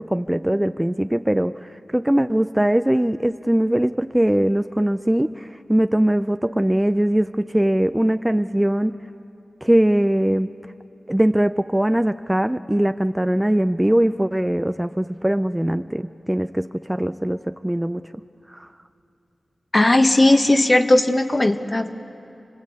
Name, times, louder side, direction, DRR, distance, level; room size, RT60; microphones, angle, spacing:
voice 1, 0.0-9.0 9.6-10.5 11.1-18.0 18.5-18.7, right 1 dB, 10° right, 10 dB, 0.5 m, -21 dB
voice 2, 19.7-22.1, left 1 dB, 35° left, 7 dB, 1.3 m, -17 dB
29.0 x 19.5 x 8.4 m, 2.7 s
cardioid pair, 50°, 0 cm